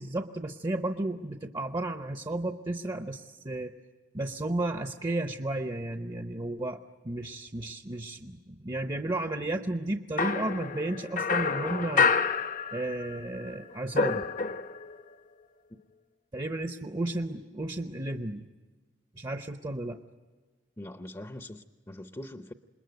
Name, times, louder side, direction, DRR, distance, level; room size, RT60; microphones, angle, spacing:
voice 1, 0.0-3.7 4.1-12.1 12.7-14.3 16.3-18.5 19.1-20.0, right 2 dB, 25° right, 7 dB, 0.8 m, -33 dB
sound 1, 10.2-13.2 13.5-14.9, left 5 dB, 45° left, 0.8 m, -28 dB
voice 2, 20.8-22.5, left 1 dB, 20° left, 8 dB, 0.7 m, -42 dB
27.5 x 21.0 x 9.3 m, 1.4 s
head